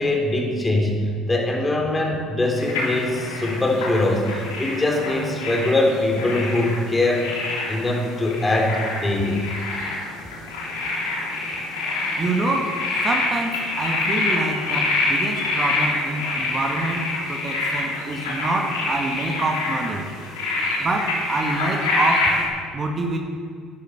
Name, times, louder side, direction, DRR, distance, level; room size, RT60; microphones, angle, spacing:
voice 1, 0.0-7.3 7.7-9.4, left 2 dB, 20° left, 0 dB, 3.7 m, -22 dB
sound 1, 2.6-22.5, left 2 dB, 80° left, 3.3 m, -26 dB
voice 2, 12.2-20.1 20.8-22.3 22.7-23.2, right 2 dB, 35° right, 2 dB, 1.7 m, -26 dB
12.0 x 11.5 x 6.7 m, 2.1 s
hypercardioid pair, 65°, 0 cm